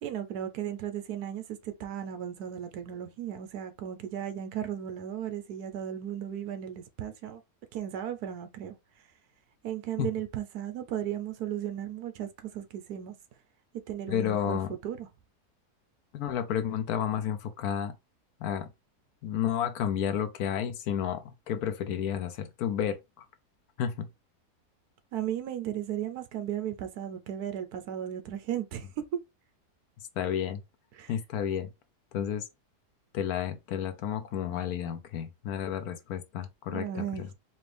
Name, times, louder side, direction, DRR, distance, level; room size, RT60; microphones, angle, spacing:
voice 1, 0.0-7.4 7.7-8.8 9.6-13.2 13.9-15.1 25.1-28.9 30.9-31.1 36.7-37.3, right 10 dB, 75° right, 1.2 m, -35 dB
voice 2, 14.1-14.7 16.1-17.9 18.4-18.7 19.2-23.2 23.8-24.1 30.2-30.6 31.1-31.7 32.1-32.5 33.1-37.3, left 9 dB, 70° left, 1.1 m, -31 dB
4.3 x 2.6 x 3.3 m
omnidirectional pair, 1.7 m